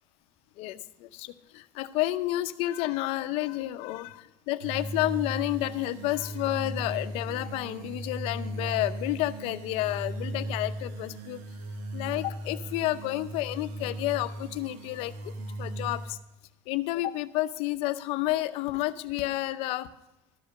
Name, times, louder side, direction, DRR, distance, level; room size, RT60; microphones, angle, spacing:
voice 1, 0.6-11.4 11.9-16.2 16.7-19.9, left 16 dB, 65° left, 12 dB, 0.6 m, -30 dB
sound 1, 4.6-16.1, right 1 dB, 80° right, 1.0 m, -37 dB
12.5 x 5.0 x 6.5 m, 0.94 s
cardioid pair, 135°, 11 cm